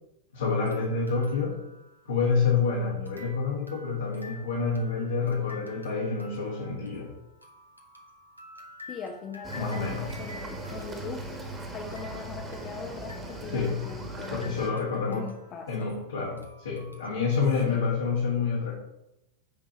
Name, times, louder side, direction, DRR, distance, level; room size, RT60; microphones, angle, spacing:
voice 1, 0.3-1.6 2.1-7.1 9.5-10.1 13.5-13.8 14.3-15.3 15.7-18.8, left 5 dB, 65° left, -2 dB, 1.8 m, -28 dB
sound 1, 0.6-2.6 3.0-17.7, left 1 dB, 90° right, 1.1 m, -50 dB
voice 2, 8.9-11.3 11.7-15.9 17.7-17.9, left 5 dB, 30° left, 2 dB, 0.9 m, -41 dB
Cricket / Waves surf, 9.4-14.7, right 2 dB, 20° right, 1.9 m, -39 dB
9.7 x 3.9 x 6.1 m, 0.87 s
figure-of-eight pair, 90°, 0 cm